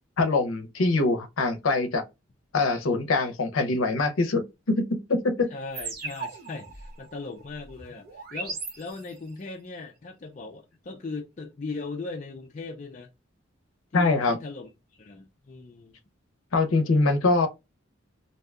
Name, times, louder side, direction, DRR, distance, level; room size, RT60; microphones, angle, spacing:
voice 1, 0.2-2.0 2.5-5.5 13.9-14.4 16.5-17.5, left 3 dB, 90° left, 0.6 m, -24 dB
voice 2, 5.5-13.1 13.9-16.0, left 3 dB, 40° left, 0.4 m, -39 dB
sound 1, 5.7-9.4, right 4 dB, 50° right, 0.8 m, -38 dB
2.7 x 2.2 x 3.5 m
head